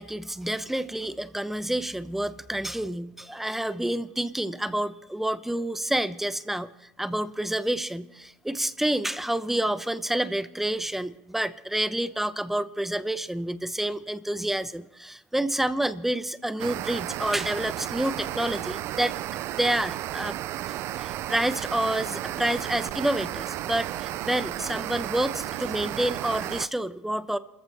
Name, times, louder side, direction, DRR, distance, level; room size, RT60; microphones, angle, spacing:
voice 1, 0.0-6.7 7.0-19.2 19.5-20.4 21.0-27.4, right 1 dB, 5° right, 13 dB, 0.9 m, -28 dB
sound 1, 16.6-26.7, right 14 dB, 60° right, 0.5 m, -33 dB
28.5 x 14.5 x 3.5 m, 0.93 s
supercardioid pair, 90°, 5 cm